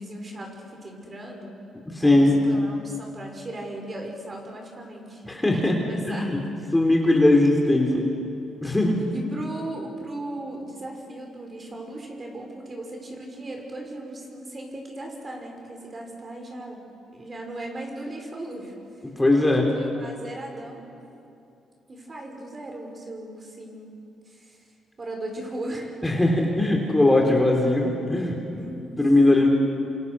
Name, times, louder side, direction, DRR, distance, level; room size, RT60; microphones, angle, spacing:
voice 1, 0.0-1.7 2.0-6.5 8.9-16.8 17.1-18.8 19.7-20.8 21.9-24.7 25.0-26.0 28.6-29.0, right 1 dB, 30° right, 1 dB, 6.1 m, -37 dB
voice 2, 1.9-2.4 5.3-5.8 6.1-6.4 6.7-8.1 8.6-9.0 19.2-19.7 26.0-28.6 29.0-29.5, left 2 dB, 10° left, 1 dB, 3.9 m, -20 dB
28.0 x 27.0 x 6.4 m, 2.7 s
cardioid pair, 90°, 0 cm